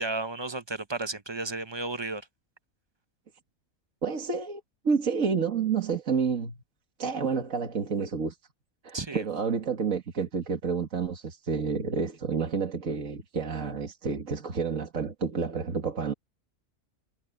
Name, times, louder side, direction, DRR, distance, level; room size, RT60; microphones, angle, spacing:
voice 1, 0.0-2.3 8.9-9.2, right 3 dB, 25° right, 0.6 m, -33 dB
voice 2, 4.0-6.6 7.0-8.4 8.8-16.1, right 5 dB, 70° right, 2.2 m, -29 dB
omnidirectional pair, 1.4 m